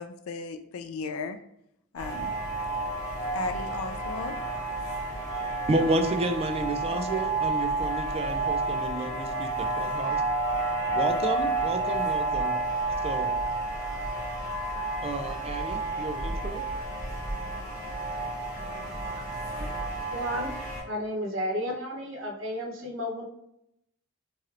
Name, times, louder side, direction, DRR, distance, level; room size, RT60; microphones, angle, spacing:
voice 1, 0.0-1.4 1.9-2.3 3.3-4.3, left 4 dB, 75° left, 8 dB, 0.4 m, -35 dB
sound 1, 2.0-20.8, right 2 dB, 15° left, 1.1 m, -30 dB
voice 2, 5.7-10.2 10.9-12.6 13.0-13.3 15.0-16.7 18.6-18.9 19.1-19.3, right 2 dB, 30° right, 6 dB, 0.3 m, -31 dB
voice 3, 19.5-20.5 20.9-23.2, equal, 60° right, 1 dB, 0.7 m, -33 dB
3.1 x 3.0 x 2.4 m, 0.79 s
head